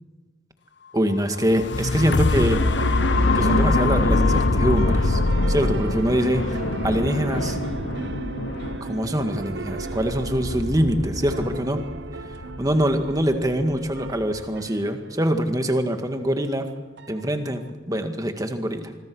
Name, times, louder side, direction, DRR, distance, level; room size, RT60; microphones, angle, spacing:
voice 1, 0.9-2.6 3.3-5.2 5.5-7.6 8.8-11.8 12.6-16.7 17.1-18.9, equal, 20° right, 6 dB, 1.9 m, -24 dB
sound 1, 1.3-9.4 9.9-10.0, left 3 dB, 65° left, 0.9 m, -23 dB
sound 2, 2.1-14.5, left 1 dB, 85° left, 2.5 m, -30 dB
sound 3, 2.1-17.7, right 3 dB, 55° right, 0.8 m, -37 dB
26.0 x 23.0 x 6.3 m, 1.3 s
head